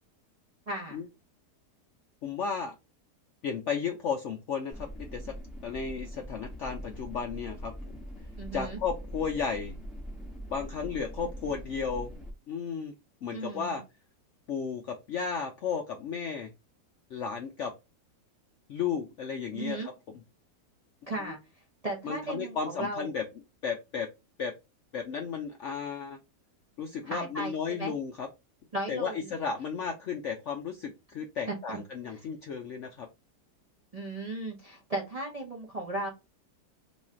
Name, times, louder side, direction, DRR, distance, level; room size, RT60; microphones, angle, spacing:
voice 1, 0.7-1.0 8.4-8.8 13.3-13.8 19.5-19.9 21.1-21.4 21.8-23.1 27.0-27.9 28.7-29.3 31.5-31.8 33.9-36.1, right 2 dB, 35° right, 0 dB, 0.6 m, -36 dB
voice 2, 2.2-2.7 3.4-5.3 5.6-8.0 8.5-9.8 10.5-12.1 12.5-12.9 13.2-13.8 14.5-16.5 17.1-17.7 18.7-19.8 21.2-21.3 22.0-23.3 23.6-24.1 24.4-24.5 24.9-26.2 26.8-28.3 28.9-33.1, left 6 dB, 70° left, 3 dB, 0.7 m, -34 dB
sound 1, 4.7-12.3, equal, ahead, 0.9 m, -42 dB
3.1 x 2.4 x 4.2 m, 0.25 s
omnidirectional pair, 1.8 m